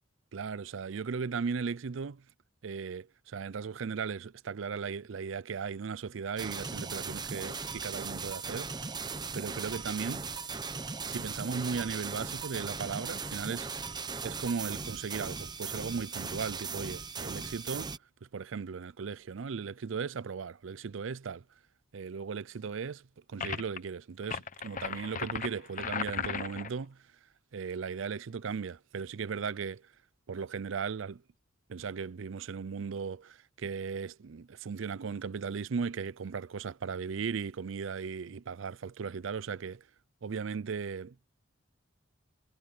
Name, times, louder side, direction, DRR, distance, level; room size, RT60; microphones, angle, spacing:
voice 1, 0.3-2.2 2.6-8.7 9.3-10.3 11.0-13.7 14.2-17.9 18.2-21.4 21.9-27.0 27.5-29.9 30.3-31.2 31.7-39.8 40.2-41.3, right 5 dB, 75° right, 0.5 m, -37 dB
sound 1, 6.4-18.0, right 4 dB, 20° right, 0.8 m, -38 dB
sound 2, 23.4-23.8 24.2-26.7, left 6 dB, 40° left, 0.9 m, -36 dB
head